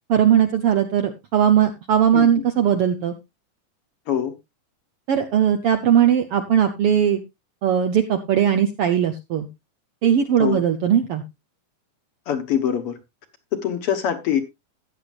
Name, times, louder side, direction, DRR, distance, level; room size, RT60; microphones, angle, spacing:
voice 1, 0.1-3.1 5.1-7.2 7.6-9.5 10.0-11.2, right 9 dB, 70° right, 1.4 m, -19 dB
voice 2, 12.3-13.0 13.5-14.4, left 9 dB, 55° left, 1.9 m, -23 dB
15.0 x 9.6 x 2.4 m
omnidirectional pair, 3.6 m